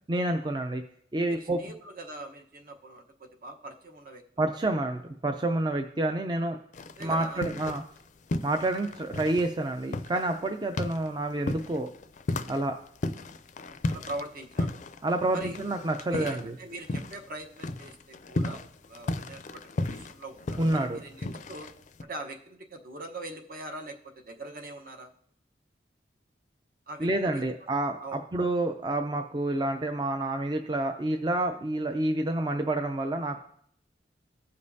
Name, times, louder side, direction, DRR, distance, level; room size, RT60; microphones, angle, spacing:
voice 1, 0.1-0.8 1.1-1.6 4.4-6.6 7.0-7.8 8.4-11.9 12.5-12.8 15.0-16.6 20.6-21.0 27.0-33.4, right 2 dB, 25° right, 6 dB, 0.5 m, -28 dB
voice 2, 1.2-4.7 6.9-7.5 13.9-14.8 15.3-15.6 16.1-21.7 22.0-25.1 26.9-27.5 28.0-28.2, right 2 dB, 55° right, 4 dB, 1.1 m, -42 dB
sound 1, 6.7-8.0 8.3-17.3 17.6-22.0, left 2 dB, 45° left, 0.4 m, -34 dB
15.5 x 5.3 x 2.7 m, 0.64 s
head